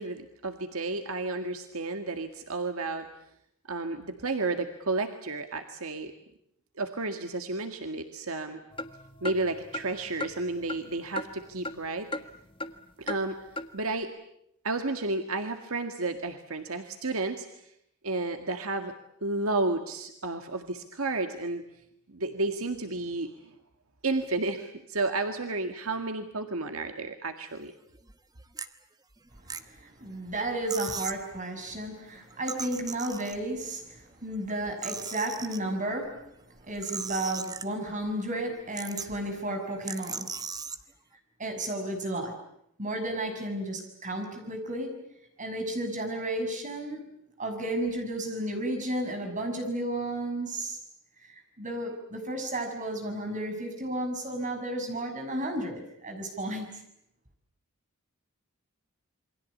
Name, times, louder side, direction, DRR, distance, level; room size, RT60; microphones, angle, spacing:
voice 1, 0.0-3.1 3.7-6.1 6.8-8.6 9.2-12.1 13.0-13.4 13.7-14.1 14.6-17.7 18.0-18.9 19.2-21.6 22.1-23.5 24.0-27.7, right 3 dB, 75° right, 6 dB, 1.9 m, -32 dB
sound 1, 8.7-11.9 12.1-12.8 13.1-13.2 13.6-13.7, left 2 dB, 25° left, 1.5 m, -37 dB
sound 2, 27.9-28.1 28.6-28.7 29.3-30.0 30.3-30.4 30.7-31.2 32.3-33.6 34.3-35.6 36.6-38.0 38.3-38.4 38.7-39.3 39.8-40.8, right 5 dB, 20° right, 1.1 m, -38 dB
voice 2, 29.6-36.3 36.6-40.3 41.4-42.4 42.8-45.0 45.4-47.0 47.4-50.8 51.6-56.7, right 1 dB, 35° right, 5 dB, 6.4 m, -33 dB
28.5 x 23.5 x 8.5 m, 0.75 s
head